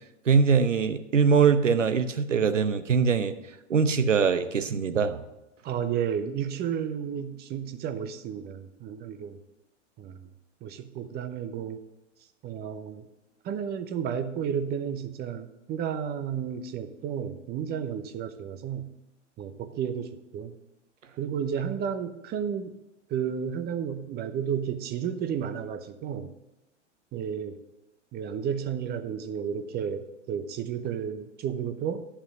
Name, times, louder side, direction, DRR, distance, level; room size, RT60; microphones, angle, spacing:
voice 1, 0.3-3.3 3.7-5.2, right 6 dB, 85° right, 10 dB, 0.9 m, -22 dB
voice 2, 5.6-9.4 10.0-10.3 10.6-11.8 12.4-13.1 13.4-18.9 19.4-20.6 21.2-22.7 23.1-26.3 27.1-27.6 28.1-32.1, right 8 dB, 25° right, 8 dB, 0.8 m, -32 dB
11.5 x 5.7 x 5.4 m, 0.99 s
figure-of-eight pair, 100°, 37 cm